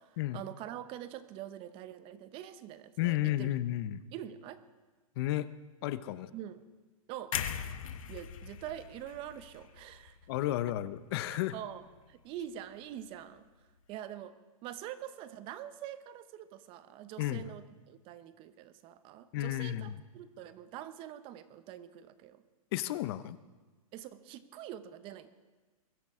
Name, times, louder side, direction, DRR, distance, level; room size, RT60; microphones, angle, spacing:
voice 1, 0.0-3.5 4.1-4.6 6.3-6.6 7.1-7.4 8.1-10.2 11.3-13.4 13.9-14.4 14.6-22.4 23.9-25.3, right 11 dB, 30° right, 12 dB, 0.8 m, -45 dB
voice 2, 3.0-4.0 5.2-5.5 5.8-6.3 10.3-11.6 17.2-17.5 19.3-20.0 22.7-23.4, left 14 dB, 45° left, 15 dB, 0.7 m, -32 dB
sound 1, 7.3-11.3 11.7-11.9, left 9 dB, 65° left, 1.1 m, -41 dB
23.0 x 13.5 x 3.7 m, 1.3 s
hypercardioid pair, 145°, 18 cm